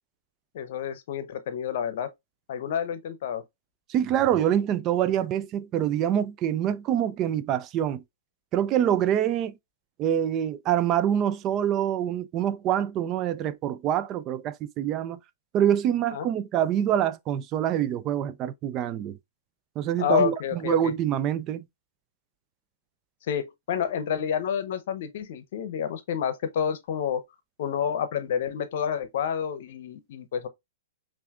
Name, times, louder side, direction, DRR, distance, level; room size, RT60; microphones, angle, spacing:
voice 1, 0.5-2.1 2.5-3.4 16.1-16.3 20.0-20.9 23.3-27.2 27.6-30.5, left 8 dB, 60° left, 0.7 m, -29 dB
voice 2, 3.9-8.0 8.5-9.5 10.0-15.2 15.5-19.2 19.8-21.6, right 10 dB, 35° right, 0.3 m, -25 dB
5.6 x 2.5 x 2.4 m
hypercardioid pair, 120°, 0 cm